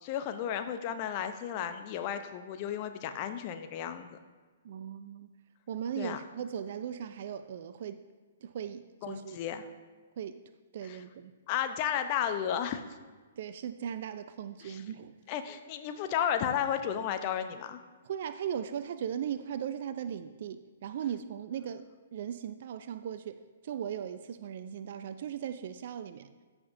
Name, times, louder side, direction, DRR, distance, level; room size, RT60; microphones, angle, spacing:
voice 1, 0.0-4.2 6.0-6.2 9.0-9.6 10.8-11.0 11.5-12.8 14.6-14.8 15.3-17.8, left 9 dB, 35° left, 8 dB, 0.7 m, -33 dB
voice 2, 4.6-5.3 5.7-8.0 8.4-9.4 10.2-10.4 10.7-11.3 13.4-15.2 18.0-21.8 22.1-26.3, right 9 dB, 50° right, 11 dB, 0.4 m, -38 dB
14.0 x 5.8 x 2.6 m, 1.4 s
figure-of-eight pair, 120°, 0 cm